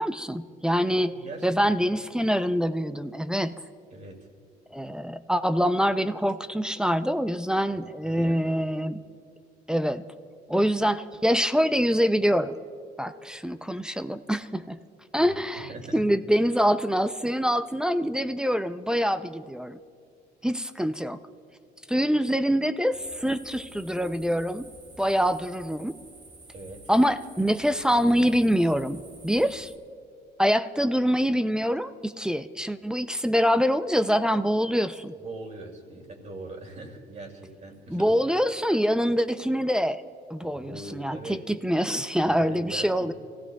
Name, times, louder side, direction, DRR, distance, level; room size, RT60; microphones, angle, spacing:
voice 1, 0.0-1.1 1.4-3.5 4.7-9.0 9.7-10.1 10.5-12.6 13.0-14.8 15.1-19.8 20.4-21.2 21.9-24.7 25.0-26.0 26.9-29.7 30.4-35.1 37.9-40.0 40.3-41.2 41.5-43.1, equal, 5° right, 11 dB, 0.4 m, -25 dB
voice 2, 1.0-1.6 3.9-4.2 8.0-8.5 15.2-16.0 26.5-26.8 35.2-38.1 40.4-41.4 42.2-43.1, right 2 dB, 45° right, 2 dB, 2.5 m, -41 dB
sound 1, 22.9-29.8, right 2 dB, 25° right, 1.2 m, -50 dB
28.5 x 15.5 x 2.3 m, 2.2 s
cardioid pair, 110°, 17 cm